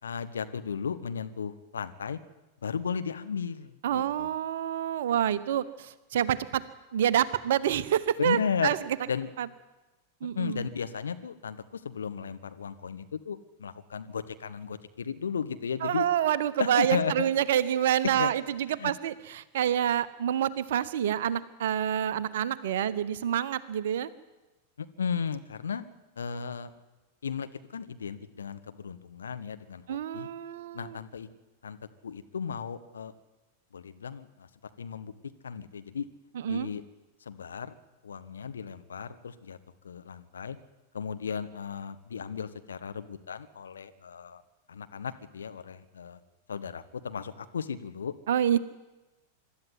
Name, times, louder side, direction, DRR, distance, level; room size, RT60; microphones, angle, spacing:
voice 1, 0.0-2.2 2.6-4.3 8.2-8.7 9.1-9.3 10.3-16.1 16.6-17.1 18.1-18.3 18.7-18.9 24.8-25.8 26.2-26.7 27.2-30.3 30.7-31.3 31.6-31.8 32.0-33.1 33.7-34.5 34.8-35.1 35.4-36.1 36.5-36.8 37.2-37.7 38.0-39.6 39.8-40.6 40.9-44.4 44.7-46.2 46.5-48.1, left 6 dB, 70° left, 11 dB, 1.3 m, -35 dB
voice 2, 3.8-6.6 6.9-8.8 9.4-9.5 10.2-10.6 15.8-24.1 29.9-31.0 36.3-36.7 48.3-48.6, right 10 dB, 60° right, 15 dB, 1.0 m, -27 dB
24.5 x 12.5 x 9.5 m, 1.1 s
figure-of-eight pair, 95°, 0 cm